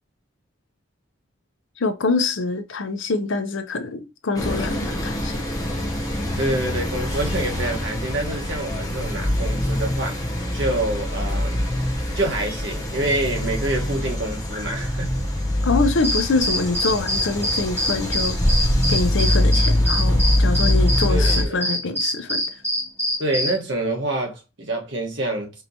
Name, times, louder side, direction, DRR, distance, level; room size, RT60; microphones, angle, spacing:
voice 1, 1.8-5.4 15.6-18.4 18.9-22.4, left 3 dB, 75° left, 0.6 m, -25 dB
sound 1, 4.4-21.5, left 1 dB, 20° left, 0.6 m, -23 dB
voice 2, 6.4-11.7 12.1-15.2 21.1-21.6 23.2-25.6, right 1 dB, 70° right, 1.2 m, -27 dB
sound 2, 16.0-23.6, left 1 dB, 10° right, 1.1 m, -24 dB
4.5 x 2.9 x 2.6 m
head